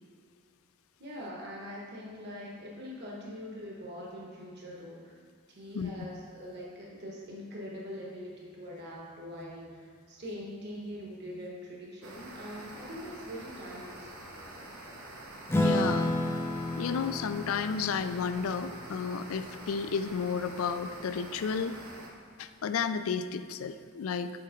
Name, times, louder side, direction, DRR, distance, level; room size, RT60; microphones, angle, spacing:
voice 1, 1.0-5.1 5.5-14.2, equal, 50° right, -4 dB, 1.2 m, -43 dB
sound 1, 12.0-22.1, right 1 dB, 90° right, 1.2 m, -46 dB
voice 2, 15.5-16.1 16.8-21.8 22.4-24.3, left 6 dB, 75° left, 11 dB, 0.4 m, -32 dB
Acoustic guitar / Strum, 15.5-20.3, left 1 dB, 10° left, 0.4 m, -32 dB
7.7 x 4.2 x 5.0 m, 2.1 s
head